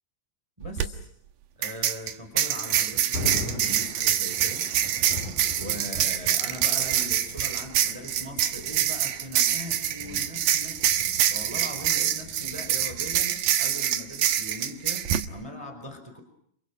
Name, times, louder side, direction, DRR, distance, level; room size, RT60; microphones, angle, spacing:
voice 1, 0.6-1.1 1.6-4.7 5.5-10.8 11.3-16.2, left 1 dB, 10° right, 7 dB, 4.6 m, -40 dB
sound 1, 0.6-0.9 1.6-15.3, right 11 dB, 75° right, 3.1 m, -25 dB
Thunder, 2.6-13.2, left 2 dB, 60° left, 6.8 m, -41 dB
30.0 x 28.5 x 6.3 m, 0.69 s
omnidirectional pair, 4.1 m